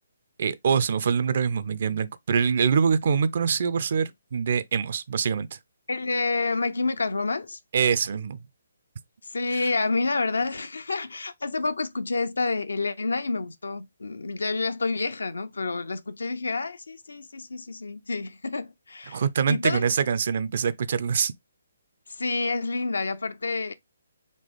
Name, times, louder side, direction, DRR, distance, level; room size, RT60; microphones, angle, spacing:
voice 1, 0.4-5.5 7.7-8.4 9.5-9.7 19.1-21.3, right 6 dB, 50° right, 0.4 m, -24 dB
voice 2, 5.9-7.6 9.3-19.2 19.5-19.9 22.1-23.7, left 3 dB, 70° left, 0.5 m, -28 dB
4.1 x 2.9 x 3.4 m
figure-of-eight pair, 140°, 0 cm